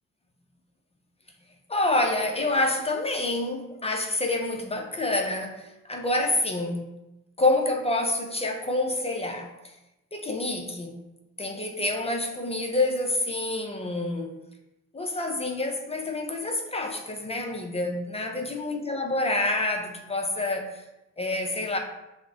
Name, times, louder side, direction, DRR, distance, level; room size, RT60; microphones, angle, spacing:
voice 1, 1.7-6.9 7.4-9.7 10.1-11.0 11.4-14.4 14.9-20.8 21.2-21.8, left 2 dB, 20° left, 0.5 m, -27 dB
5.9 x 2.1 x 3.6 m
cardioid pair, 90°, 30 cm